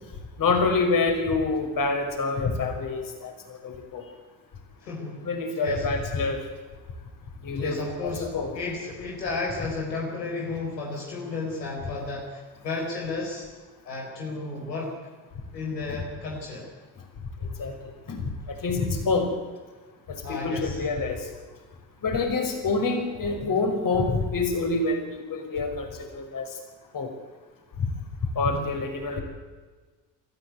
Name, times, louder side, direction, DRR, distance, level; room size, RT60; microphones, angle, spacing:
voice 1, 0.4-3.3 3.6-4.0 5.2-6.4 7.4-8.5 17.6-17.7 18.1-18.2 18.6-19.3 20.1-21.2 22.0-26.5 26.9-27.1 27.8-27.9 28.4-29.2, left 3 dB, 40° left, 4 dB, 5.4 m, -26 dB
voice 2, 4.8-5.3 5.6-5.9 7.6-13.5 13.8-14.9 15.5-16.7 20.2-20.8 28.5-28.8, left 3 dB, 80° left, -1 dB, 4.1 m, -33 dB
26.5 x 14.0 x 9.4 m, 1.3 s
figure-of-eight pair, 50°, 49 cm